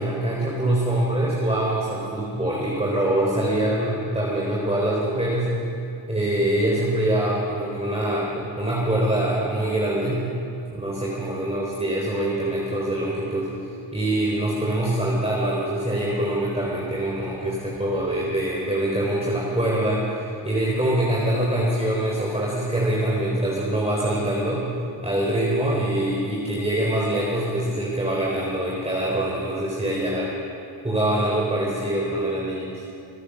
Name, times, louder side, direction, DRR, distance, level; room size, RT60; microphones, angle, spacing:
voice 1, 0.0-5.5 6.1-10.2 10.7-13.5 13.9-24.7 25.0-30.3 30.8-32.7, right 1 dB, 10° right, -5 dB, 3.9 m, -24 dB
22.0 x 9.7 x 6.6 m, 2.6 s
supercardioid pair, 60°, 49 cm